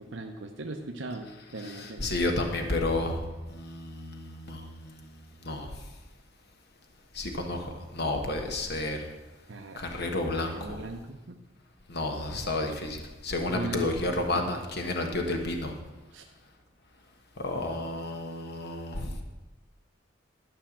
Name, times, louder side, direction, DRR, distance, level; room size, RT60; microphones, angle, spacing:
voice 1, 0.0-2.1 9.5-9.8 10.4-11.4 13.5-14.1 14.3-14.5 16.1-16.2 17.5-17.6, right 2 dB, 65° right, 3 dB, 0.8 m, -38 dB
voice 2, 1.6-5.1 5.4-5.7 7.1-9.1 9.8-10.8 11.9-15.7 17.4-19.1, left 2 dB, 55° left, 3 dB, 1.3 m, -31 dB
12.5 x 5.6 x 7.4 m, 1.1 s
head